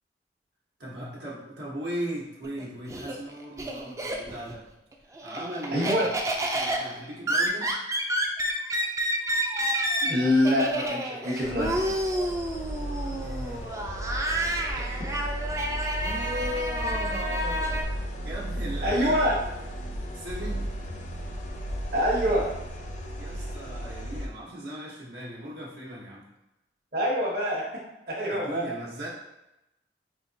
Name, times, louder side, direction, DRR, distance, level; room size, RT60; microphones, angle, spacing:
voice 1, 0.8-4.6 5.2-6.3 6.5-7.7 13.0-13.7 16.0-17.9 18.2-19.4 20.1-20.7 23.2-26.2 28.3-29.1, equal, 80° right, -5 dB, 1.1 m, -37 dB
Laughter, 2.4-4.6 4.9-17.8, right 1 dB, 15° right, 0.3 m, -30 dB
voice 2, 5.7-6.1 10.0-11.9 14.7-15.1 18.8-19.3 21.9-22.5 26.9-28.7, equal, 55° right, -5 dB, 1.0 m, -26 dB
sound 1, 11.4-24.3, right 1 dB, 40° left, 0.5 m, -34 dB
4.9 x 2.9 x 2.7 m, 0.91 s
head